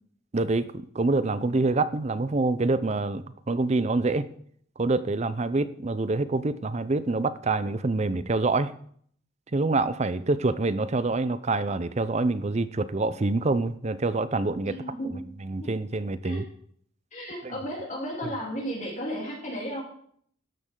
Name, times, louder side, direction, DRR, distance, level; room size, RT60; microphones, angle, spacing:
voice 1, 0.3-4.3 4.8-8.7 9.5-14.7 15.4-16.4 17.4-17.5, right 3 dB, 35° right, 15 dB, 0.5 m, -26 dB
voice 2, 14.7-15.2 15.6-15.7 16.2-16.5 17.1-19.8, equal, 35° left, -2 dB, 3.4 m, -34 dB
13.5 x 10.5 x 3.8 m, 0.62 s
head